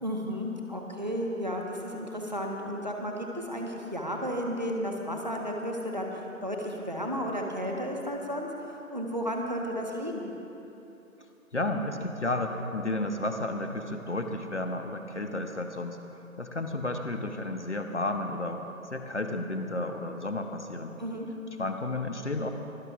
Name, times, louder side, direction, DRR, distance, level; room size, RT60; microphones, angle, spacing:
voice 1, 0.0-10.3 21.0-21.3, equal, 30° right, 0 dB, 1.2 m, -33 dB
voice 2, 11.5-16.0 16.4-18.6 18.9-20.9 21.6-22.5, left 2 dB, 50° left, 6 dB, 1.0 m, -32 dB
23.5 x 16.5 x 2.5 m, 2.9 s
figure-of-eight pair, 170°, 43 cm